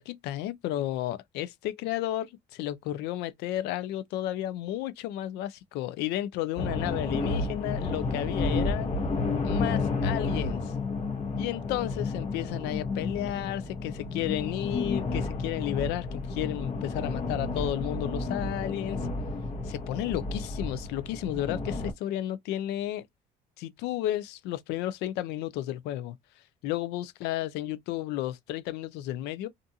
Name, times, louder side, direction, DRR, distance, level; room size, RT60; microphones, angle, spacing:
voice 1, 0.0-8.9 9.4-10.7 11.4-19.0 19.7-23.1 23.6-26.2 26.6-29.5, left 13 dB, 90° left, 0.4 m, -32 dB
sound 1, 6.6-21.9, left 3 dB, 40° left, 1.0 m, -31 dB
2.5 x 2.3 x 2.6 m
cardioid pair, 110°, 17 cm